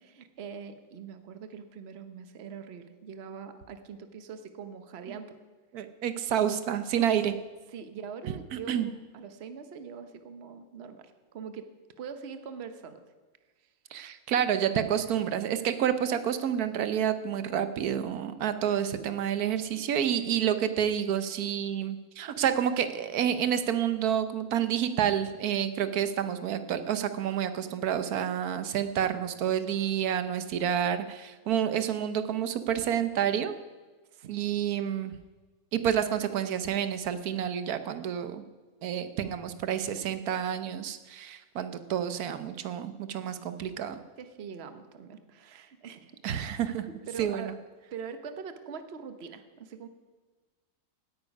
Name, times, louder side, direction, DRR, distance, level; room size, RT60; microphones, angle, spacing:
voice 1, 0.0-5.4 7.0-7.1 7.7-11.7 12.0-13.0 13.6-13.7 34.1-34.6 44.2-46.2 47.1-47.5 47.9-49.9, right 6 dB, 50° right, 9 dB, 1.1 m, -43 dB
voice 2, 5.7-7.3 8.7-8.9 13.9-33.6 34.3-35.2 35.7-38.4 38.8-44.0 46.2-46.9 47.2-47.5, right 9 dB, 80° right, 11 dB, 1.3 m, -29 dB
17.0 x 9.7 x 5.3 m, 1.3 s
omnidirectional pair, 1.6 m